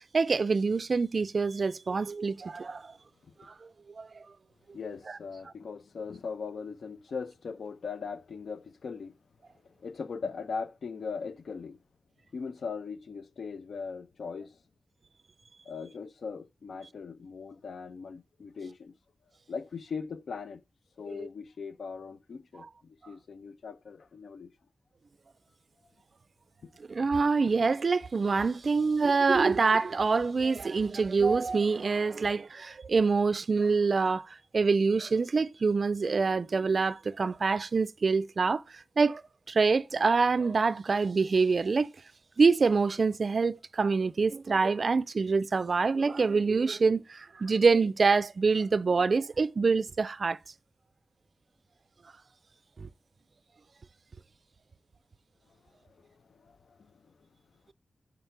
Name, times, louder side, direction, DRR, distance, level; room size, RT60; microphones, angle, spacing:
voice 1, 0.0-2.9 3.4-3.7 4.0-4.2 5.1-5.2 21.2-21.3 26.9-39.2 39.5-41.9 42.4-50.4 52.8-52.9, right 4 dB, 55° right, 0.3 m, -26 dB
voice 2, 4.7-9.2 9.6-11.8 12.3-14.6 15.7-18.9 19.5-20.6 21.0-24.5 55.9-57.1, left 5 dB, 85° left, 0.6 m, -40 dB
5.8 x 4.9 x 3.3 m
wide cardioid pair, 105°, 0 cm